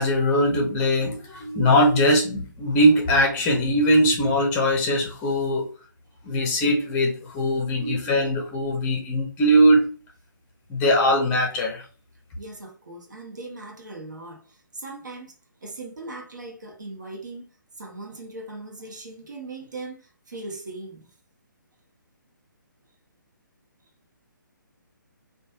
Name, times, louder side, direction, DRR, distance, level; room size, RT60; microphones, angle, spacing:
voice 1, 0.0-5.7 6.2-9.8 10.7-11.8, equal, 15° left, 0.7 m, -21 dB
voice 2, 12.4-15.3 15.6-17.5 17.8-21.1, right 2 dB, 60° right, 1.1 m, -39 dB
3.2 x 2.3 x 2.8 m
figure-of-eight pair, 135°, 11 cm